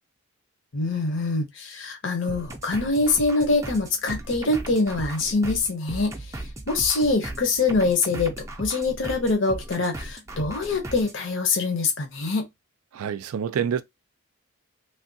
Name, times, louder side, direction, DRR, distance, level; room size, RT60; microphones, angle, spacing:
voice 1, 0.7-6.1 6.7-12.5, left 3 dB, 55° left, 0.8 m, -24 dB
sound 1, 2.3-11.2, right 1 dB, 15° right, 0.4 m, -37 dB
voice 2, 12.9-13.8, right 7 dB, 85° right, 0.4 m, -27 dB
3.3 x 2.2 x 2.6 m
head